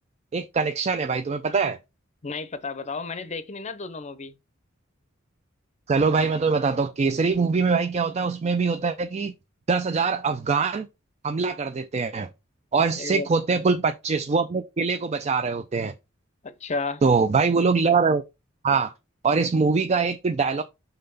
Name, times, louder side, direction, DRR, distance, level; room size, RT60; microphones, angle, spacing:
voice 1, 0.3-1.8 5.9-9.3 9.7-10.9 11.2-12.3 12.7-15.9 17.0-18.2 18.6-18.9 19.2-20.6, right 4 dB, 30° right, 0.4 m, -23 dB
voice 2, 2.2-4.3 13.0-13.3 16.4-17.0, left 4 dB, 35° left, 0.6 m, -32 dB
5.7 x 3.3 x 5.4 m
head